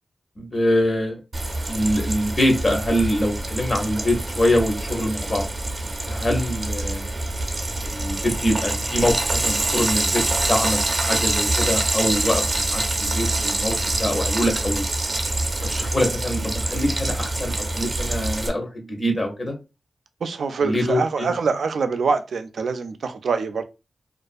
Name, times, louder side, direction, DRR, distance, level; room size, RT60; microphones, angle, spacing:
voice 1, 0.4-1.2 1.7-5.4 6.1-7.1 7.8-10.2 10.5-10.8 11.1-14.8 15.6-19.5 20.6-21.4, left 1 dB, 40° left, 0.8 m, -24 dB
Frying (food), 1.3-18.5, right 2 dB, 40° right, 0.6 m, -25 dB
voice 2, 20.2-23.6, right 5 dB, 90° right, 0.3 m, -24 dB
2.4 x 2.3 x 2.5 m
wide cardioid pair, 90°, 0 cm